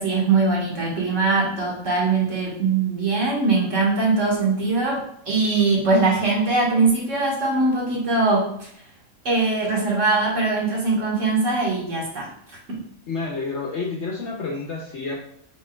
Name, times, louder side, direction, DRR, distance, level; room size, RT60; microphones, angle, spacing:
voice 1, 0.0-8.7 9.3-12.8, right 3 dB, 60° right, -4 dB, 1.8 m, -21 dB
voice 2, 13.1-15.2, left 3 dB, 60° left, -1 dB, 0.9 m, -29 dB
5.1 x 3.7 x 2.2 m, 0.68 s
omnidirectional pair, 1.5 m